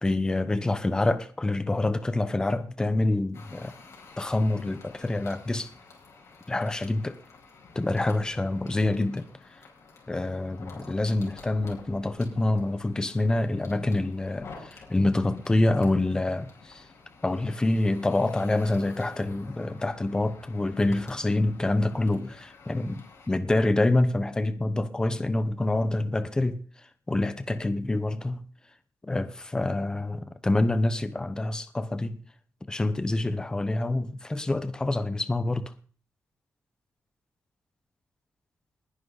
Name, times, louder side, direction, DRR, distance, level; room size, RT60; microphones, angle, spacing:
voice 1, 0.0-3.7 4.2-5.7 6.5-7.2 7.7-9.3 10.1-16.8 17.2-26.6 27.1-28.5 29.0-32.2 32.7-35.7, left 2 dB, 15° left, 1.0 m, -26 dB
sound 1, 3.3-23.3, left 4 dB, 55° left, 5.2 m, -50 dB
20.0 x 10.5 x 4.1 m
wide cardioid pair, 170°, 6 cm